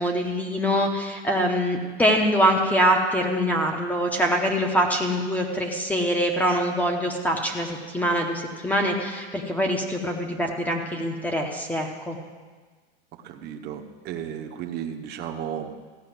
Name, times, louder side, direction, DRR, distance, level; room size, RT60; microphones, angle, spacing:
voice 1, 0.0-12.2, equal, 5° left, 2 dB, 0.9 m, -24 dB
voice 2, 13.2-15.9, right 9 dB, 30° right, 3 dB, 1.0 m, -34 dB
15.0 x 5.6 x 9.1 m, 1.4 s
supercardioid pair, 155°, 34 cm